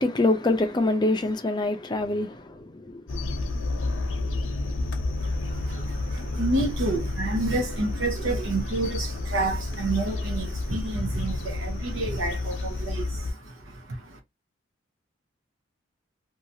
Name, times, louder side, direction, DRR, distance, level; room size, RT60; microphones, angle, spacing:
voice 1, 0.0-3.0, left 2 dB, 20° left, 0.4 m, -25 dB
sound 1, 3.1-13.3, left 2 dB, 75° left, 0.7 m, -30 dB
voice 2, 5.2-14.2, right 2 dB, 75° right, 0.8 m, -29 dB
2.7 x 2.3 x 2.7 m
head